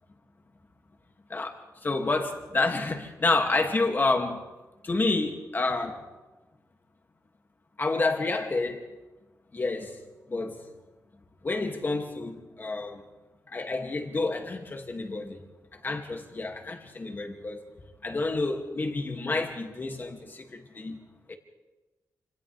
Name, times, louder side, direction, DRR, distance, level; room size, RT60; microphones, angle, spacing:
voice 1, 1.8-4.4 4.9-6.0 7.8-8.8 9.5-9.9 10.3-10.6 11.4-13.0 13.5-15.4 15.8-17.6 18.0-20.2 20.8-21.0 21.3-21.4, left 3 dB, 30° left, 3 dB, 2.4 m, -28 dB
27.5 x 27.0 x 3.5 m, 1.2 s
wide cardioid pair, 140°, 6 cm